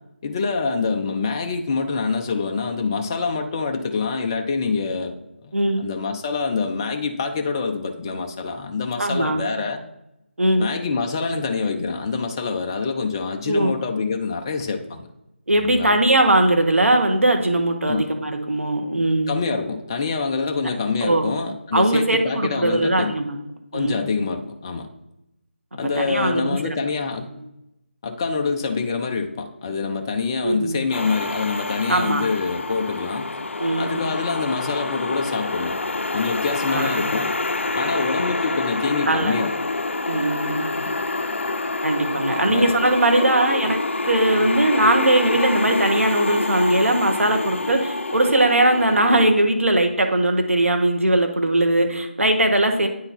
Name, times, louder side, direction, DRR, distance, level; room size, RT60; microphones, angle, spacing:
voice 1, 0.2-5.1 5.4-5.5 5.8-9.8 10.6-15.1 15.6-16.0 17.9-18.1 19.3-23.1 23.7-24.9 25.7-27.3 28.0-33.4 33.8-35.8 36.1-37.3 37.7-39.5 42.4-42.7 43.1-43.6, left 4 dB, 20° left, 4 dB, 0.4 m, -26 dB
voice 2, 5.5-5.8 9.0-9.4 10.4-10.7 13.5-13.7 15.5-19.4 21.0-21.3 21.7-23.4 23.7-24.0 26.0-26.7 30.4-30.8 31.9-32.2 33.6-34.1 36.7-36.9 39.1-39.4 40.1-40.7 41.8-43.8 44.1-52.9, right 1 dB, 80° right, 4 dB, 1.2 m, -20 dB
sound 1, 30.9-49.3, left 2 dB, 70° left, 0.5 m, -27 dB
8.9 x 3.9 x 4.2 m, 0.88 s
figure-of-eight pair, 165°, 7 cm